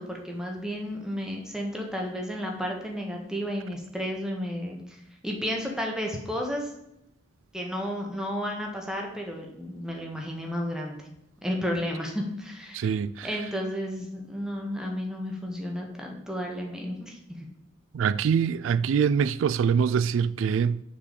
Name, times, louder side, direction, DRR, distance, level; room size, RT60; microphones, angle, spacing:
voice 1, 0.0-5.0 5.2-6.7 7.5-11.0 11.4-13.0 13.2-17.4, equal, 5° right, 1.5 m, -32 dB
voice 2, 12.7-13.3 17.9-20.8, right 7 dB, 85° right, 0.3 m, -24 dB
7.1 x 4.7 x 6.9 m
head